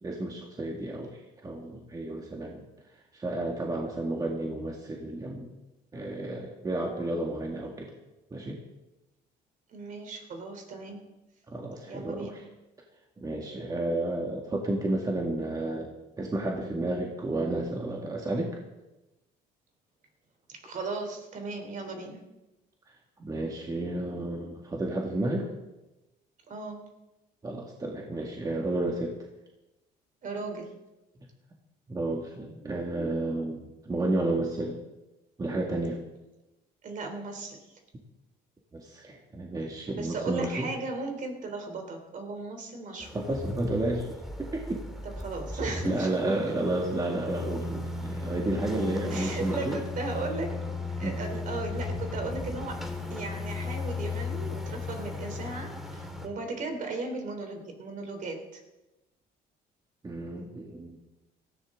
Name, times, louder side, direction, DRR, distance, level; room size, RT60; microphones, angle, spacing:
voice 1, 0.0-2.6 3.1-5.5 5.9-7.9 8.3-8.6 11.5-12.4 13.2-15.9 16.2-18.5 23.2-25.5 27.4-29.1 31.9-34.8 35.4-36.0 38.7-40.7 43.1-44.1 44.4-44.8 45.6-49.8 51.0-51.2 60.0-61.0, right 2 dB, 20° right, 0 dB, 2.0 m, -31 dB
voice 2, 9.7-11.0 11.9-12.4 20.5-22.2 26.5-26.8 30.2-30.7 36.8-37.8 39.9-43.3 45.0-46.4 49.1-50.6 51.0-52.8 53.1-58.6, right 3 dB, 50° right, 4 dB, 3.5 m, -36 dB
sound 1, 43.0-56.3, left 3 dB, ahead, 2.1 m, -36 dB
18.0 x 14.5 x 3.8 m, 1.0 s
cardioid pair, 110°, 17 cm